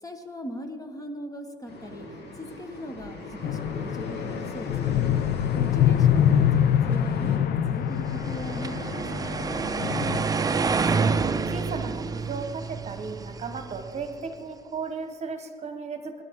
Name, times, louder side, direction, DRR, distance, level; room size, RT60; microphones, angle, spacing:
voice 1, 0.0-5.1 5.6-9.4, equal, 20° left, 6 dB, 1.2 m, -39 dB
sound 1, 1.7-7.4, left 2 dB, 90° left, 2.7 m, -40 dB
sound 2, 3.4-10.2, left 9 dB, 65° left, 0.7 m, -24 dB
sound 3, 8.1-14.2, right 4 dB, 20° right, 0.5 m, -28 dB
voice 2, 10.3-11.2 11.5-16.2, right 4 dB, 40° right, 7 dB, 1.2 m, -36 dB
21.0 x 11.0 x 3.7 m, 2.2 s
cardioid pair, 110°, 17 cm